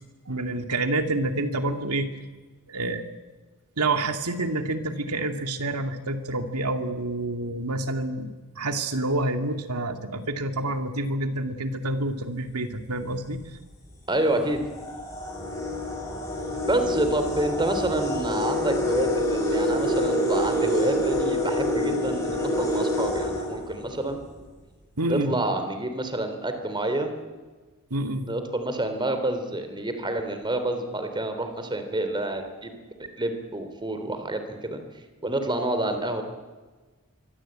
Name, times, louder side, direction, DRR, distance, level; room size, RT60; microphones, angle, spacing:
voice 1, 0.3-2.1 2.7-3.0 3.8-8.3 8.6-13.4 25.0-25.3 27.9-28.3, right 2 dB, 90° right, 7 dB, 2.5 m, -28 dB
sound 1, 12.8-13.1 13.9-14.0 14.4-24.2, equal, 15° left, 7.5 m, -27 dB
voice 2, 14.1-14.6 16.6-24.2 25.1-27.1 28.3-32.7 33.0-34.8 35.2-36.2, right 1 dB, 20° right, 8 dB, 3.4 m, -28 dB
26.0 x 23.5 x 8.9 m, 1.3 s
head